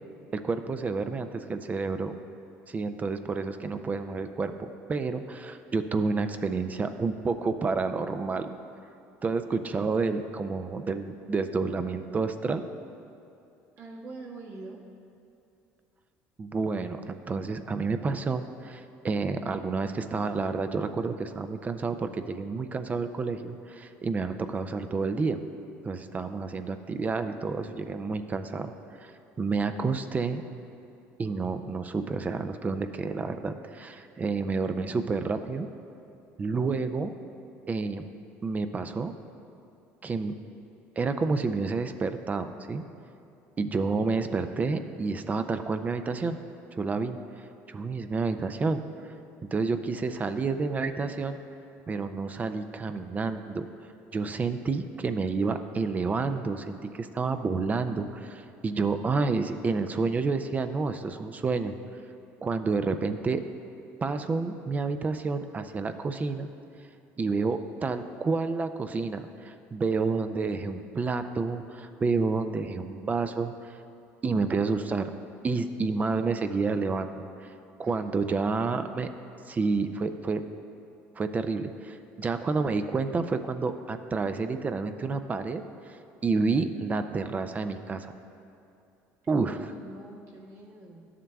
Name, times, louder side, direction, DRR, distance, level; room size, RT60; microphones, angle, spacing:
voice 1, 0.3-2.1 2.7-8.6 9.2-12.6 16.4-25.4 25.8-28.7 29.0-29.1 29.4-30.4 31.2-35.7 36.4-37.1 37.7-38.0 38.4-39.1 40.0-40.4 41.0-42.8 43.6-46.4 46.7-47.2 47.7-48.8 49.5-51.4 51.9-53.7 54.1-61.7 62.4-63.4 64.0-66.5 67.2-73.5 74.2-75.1 75.4-77.5 77.8-79.1 79.5-80.4 81.2-85.6 85.9-88.1 89.3-89.6, right 4 dB, 25° right, 9 dB, 0.4 m, -29 dB
voice 2, 13.8-14.8 77.8-78.1 89.5-91.1, right 2 dB, 55° right, -4 dB, 1.5 m, -44 dB
12.0 x 7.3 x 2.3 m, 2.7 s
supercardioid pair, 100°, 6 cm